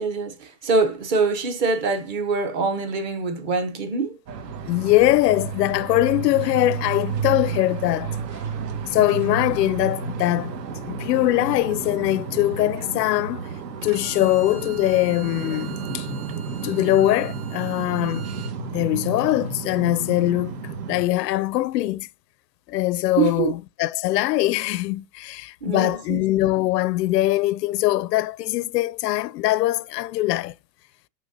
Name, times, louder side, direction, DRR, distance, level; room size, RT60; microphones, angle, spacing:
voice 1, 0.0-4.2 23.2-23.5 25.6-26.2, right 4 dB, 30° right, 0.8 m, -24 dB
sound 1, 4.3-21.0, right 5 dB, 75° right, 1.7 m, -32 dB
voice 2, 4.7-8.2 8.8-10.5 10.9-13.5 13.8-16.1 16.6-18.3 18.6-22.1 22.7-30.5, left 16 dB, 75° left, 0.6 m, -22 dB
Bowed string instrument, 13.8-18.5, right 10 dB, 55° right, 1.4 m, -44 dB
6.2 x 6.1 x 2.7 m
supercardioid pair, 180°, 49 cm